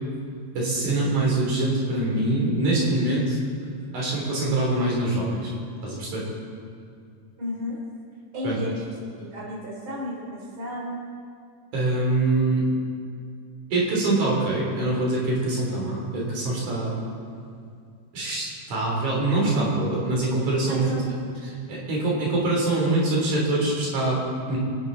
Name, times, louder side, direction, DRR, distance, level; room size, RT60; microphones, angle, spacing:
voice 1, 0.5-3.4 3.9-5.5 5.8-6.2 8.4-8.6 11.7-12.7 13.7-16.9 18.1-20.9 21.7-24.2 24.5-24.6, right 2 dB, 85° right, -4 dB, 4.9 m, -24 dB
voice 2, 7.4-7.8 8.3-11.0 20.6-21.1 21.4-21.5, left 1 dB, 40° right, -4 dB, 4.4 m, -33 dB
28.0 x 9.9 x 4.1 m, 2.4 s
omnidirectional pair, 3.3 m